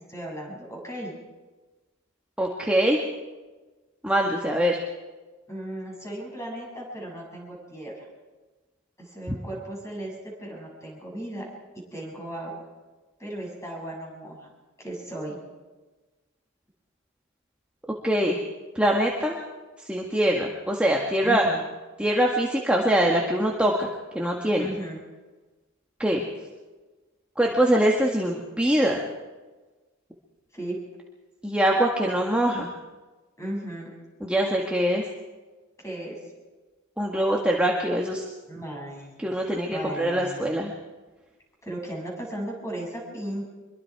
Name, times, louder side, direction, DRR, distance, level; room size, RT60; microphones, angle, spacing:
voice 1, 0.1-1.1 5.5-8.1 9.0-11.5 11.8-12.5 13.2-14.5 14.8-15.4 21.2-21.6 24.6-25.0 30.5-30.8 33.4-33.9 35.8-36.2 38.5-40.5 41.6-43.4, right 1 dB, 15° left, -1 dB, 7.3 m, -36 dB
voice 2, 2.4-3.0 4.0-4.8 9.3-9.4 18.0-18.4 18.8-19.4 19.9-21.5 22.0-23.9 24.1-24.7 26.0-26.2 27.4-29.0 31.4-32.7 34.2-35.0 37.0-38.3 39.2-40.7, right 1 dB, 5° right, -1 dB, 1.8 m, -23 dB
25.0 x 23.0 x 4.8 m, 1.3 s
head